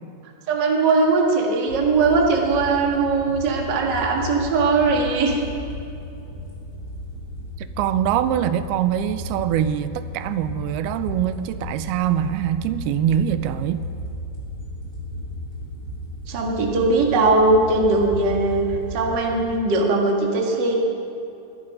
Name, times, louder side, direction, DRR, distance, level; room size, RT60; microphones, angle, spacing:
voice 1, 0.5-5.4 16.3-20.7, right 3 dB, 40° right, 0 dB, 1.7 m, -20 dB
sound 1, 1.7-19.4, left 1 dB, 25° left, 3.6 m, -35 dB
voice 2, 7.6-13.8, right 10 dB, 90° right, 12 dB, 2.5 m, -23 dB
22.5 x 10.5 x 5.4 m, 2.7 s
omnidirectional pair, 4.5 m